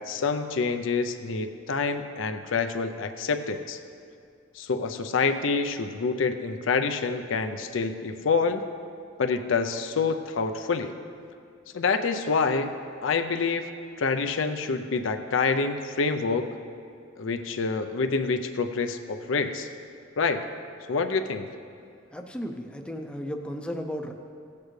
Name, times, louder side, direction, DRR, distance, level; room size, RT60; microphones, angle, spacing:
voice 1, 0.0-3.8 4.6-8.6 9.2-10.9 11.7-12.7 13.0-13.7 14.0-16.5 17.2-19.7 20.2-20.4 20.9-21.5, left 4 dB, 75° left, 7 dB, 0.6 m, -27 dB
voice 2, 22.1-24.1, equal, 5° left, 3 dB, 0.5 m, -34 dB
16.0 x 8.6 x 3.2 m, 2.3 s
head